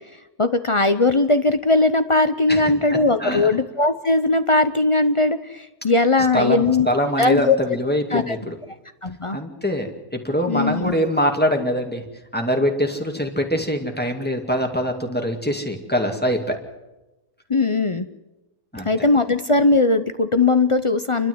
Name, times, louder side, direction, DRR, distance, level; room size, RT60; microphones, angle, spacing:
voice 1, 0.4-6.9 7.2-7.6 8.1-8.4 9.0-9.4 10.5-10.9 17.5-18.1 18.8-21.3, left 3 dB, 40° left, 10 dB, 0.4 m, -19 dB
voice 2, 6.3-8.6 9.3-12.1 12.3-16.6 18.7-18.9, equal, 5° left, 3 dB, 2.1 m, -23 dB
28.5 x 12.5 x 7.9 m, 1.0 s
omnidirectional pair, 1.5 m